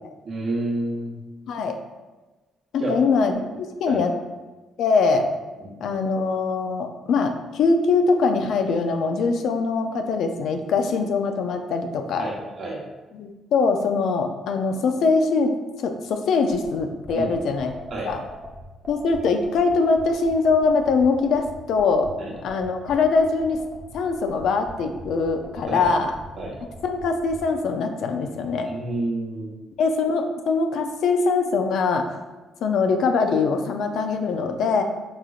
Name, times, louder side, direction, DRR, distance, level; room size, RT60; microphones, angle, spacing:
voice 1, 0.2-1.2 2.8-3.0 3.9-4.0 5.6-5.7 12.2-12.8 17.1-17.3 17.9-18.1 22.2-22.3 25.7-25.9 26.4-26.5 28.6-29.5, right 2 dB, 60° right, -3 dB, 0.9 m, -29 dB
voice 2, 1.5-1.8 2.7-4.1 4.8-5.3 5.8-12.3 13.2-15.5 15.8-17.7 18.0-18.2 18.9-22.1 22.4-23.6 23.9-26.1 26.8-28.7 29.8-32.1 32.6-34.8, left 4 dB, 75° left, 6 dB, 0.3 m, -22 dB
sound 1, 16.5-27.4, equal, 25° right, 0.8 m, -40 dB
3.8 x 3.0 x 2.4 m, 1.2 s
cardioid pair, 90°, 0 cm